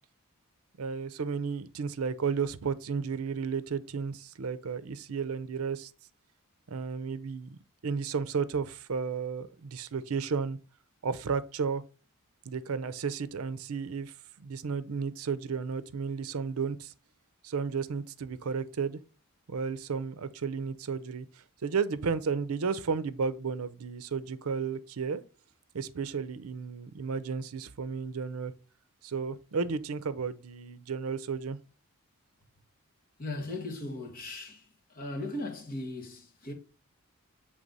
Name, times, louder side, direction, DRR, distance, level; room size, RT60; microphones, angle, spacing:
voice 1, 0.8-5.9 6.7-10.6 11.0-11.8 12.5-16.9 17.4-19.0 19.5-25.2 25.7-28.5 29.0-31.6, right 5 dB, 80° right, 0.5 m, -33 dB
voice 2, 33.2-34.6 34.9-36.5, left 2 dB, 40° left, 1.4 m, -37 dB
7.6 x 3.3 x 5.3 m
head